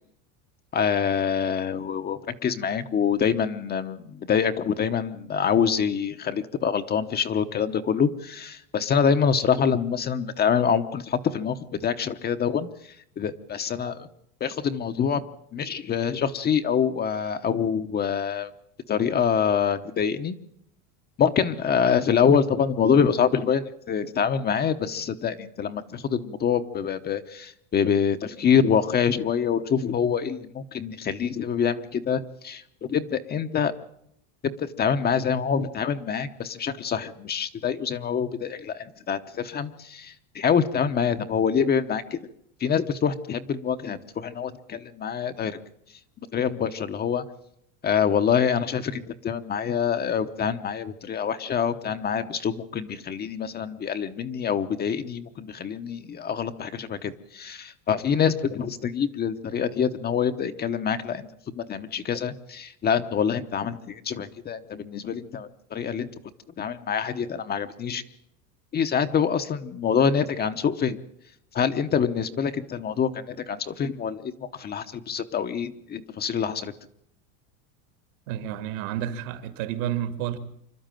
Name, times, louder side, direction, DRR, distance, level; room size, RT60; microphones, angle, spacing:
voice 1, 0.7-14.1 14.4-15.2 15.5-18.5 18.9-20.4 21.2-33.7 34.4-42.2 42.6-45.6 46.3-47.2 47.8-61.3 61.6-66.1 66.6-68.0 68.7-71.0 71.5-76.7, left 7 dB, 20° left, 0.9 m, -25 dB
voice 2, 78.3-80.4, right 11 dB, 65° right, 2.6 m, -30 dB
26.5 x 12.5 x 9.1 m
supercardioid pair, 155°, 42 cm